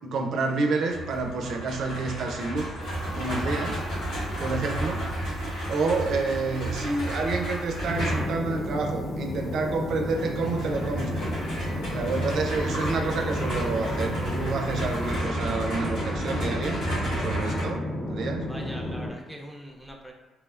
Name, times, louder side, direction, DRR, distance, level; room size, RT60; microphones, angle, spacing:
voice 1, 0.0-2.7 3.1-3.8 4.4-5.1 5.7-11.3 11.9-16.8 17.2-18.5, right 3 dB, 70° right, 3 dB, 0.4 m, -29 dB
sound 1, 0.9-8.4 10.2-17.7, right 1 dB, 85° left, 1.5 m, -32 dB
sound 2, 2.8-15.2, right 2 dB, 65° left, 0.3 m, -45 dB
sound 3, 7.8-19.1, left 1 dB, 40° left, 1.0 m, -32 dB
voice 2, 18.5-20.1, equal, ahead, -1 dB, 0.5 m, -42 dB
3.0 x 2.1 x 2.3 m, 1.2 s
supercardioid pair, 60°, 0 cm